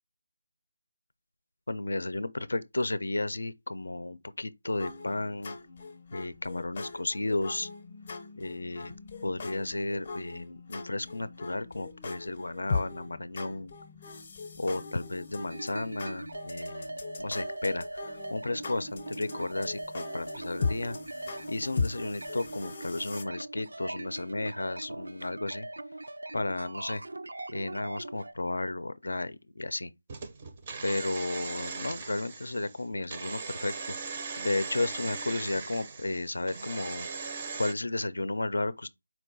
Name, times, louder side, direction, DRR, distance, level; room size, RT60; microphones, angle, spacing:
voice 1, 1.7-5.6 6.1-7.7 8.4-8.9 9.2-13.7 14.6-16.9 17.2-21.0 21.5-25.7 26.3-27.0 27.5-29.9 30.8-33.9 34.4-37.1 37.6-38.9, left 2 dB, 80° left, 0.4 m, -33 dB
sound 1, 4.8-23.2, left 4 dB, 30° left, 0.6 m, -39 dB
sound 2, 15.5-28.3, right 2 dB, 80° right, 0.4 m, -41 dB
sound 3, 30.1-37.7, right 5 dB, 20° right, 0.5 m, -39 dB
4.4 x 2.3 x 3.8 m
figure-of-eight pair, 175°, 0 cm